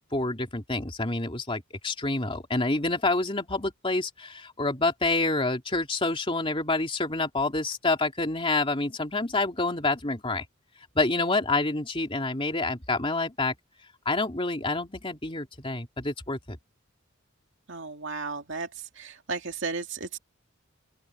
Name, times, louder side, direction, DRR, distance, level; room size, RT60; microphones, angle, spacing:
voice 1, 0.1-10.4 10.9-13.5 14.0-16.6, left 2 dB, 25° left, 3.0 m, -28 dB
voice 2, 17.7-18.7 19.0-20.2, right 4 dB, 60° right, 2.5 m, -34 dB
open air
head